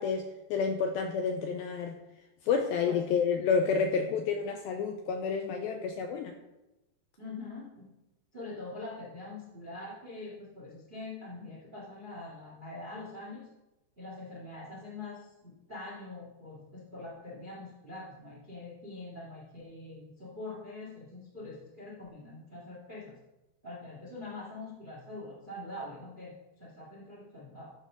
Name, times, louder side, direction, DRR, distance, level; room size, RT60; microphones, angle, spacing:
voice 1, 0.0-2.0 2.5-6.3, left 5 dB, 80° left, 4 dB, 2.2 m, -29 dB
voice 2, 7.2-7.9 8.3-13.5 14.0-23.1 23.6-27.7, left 2 dB, 25° right, -4 dB, 1.1 m, -44 dB
12.0 x 4.2 x 6.1 m, 0.96 s
omnidirectional pair, 4.9 m